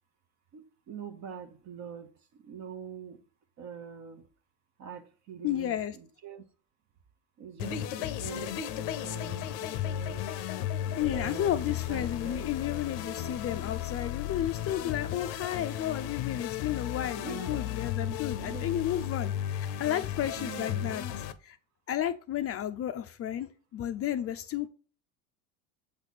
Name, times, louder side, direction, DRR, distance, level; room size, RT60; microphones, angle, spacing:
voice 1, 0.5-3.2 3.6-4.3 4.8-6.4 7.4-8.6 9.0-10.3 11.0-12.8 17.2-17.7 18.4-18.8 20.3-21.0, right 7 dB, 45° right, 0.8 m, -44 dB
voice 2, 5.4-6.0 11.0-21.0 21.4-21.6 21.9-24.7, left 11 dB, 35° left, 0.5 m, -32 dB
sound 1, 7.6-21.3, left 11 dB, 70° left, 0.7 m, -35 dB
7.3 x 3.3 x 4.1 m
supercardioid pair, 105°, 41 cm